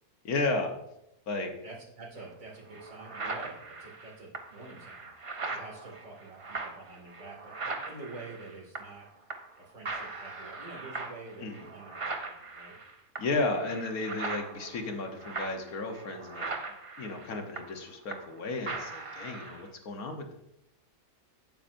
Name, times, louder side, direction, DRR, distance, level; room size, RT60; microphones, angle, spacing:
voice 1, 0.2-0.7 1.3-1.5 11.4-11.5 13.2-16.5 17.0-20.3, left 3 dB, 70° left, 4 dB, 1.5 m, -33 dB
voice 2, 1.6-5.1 5.5-9.1 9.6-12.7, right 3 dB, 60° right, -2 dB, 2.7 m, -47 dB
sound 1, 2.2-2.3 2.7-9.0 9.3-9.6 9.9-18.4 18.7-19.7, right 3 dB, 35° right, 0.5 m, -40 dB
8.8 x 8.7 x 2.6 m, 0.82 s
omnidirectional pair, 1.6 m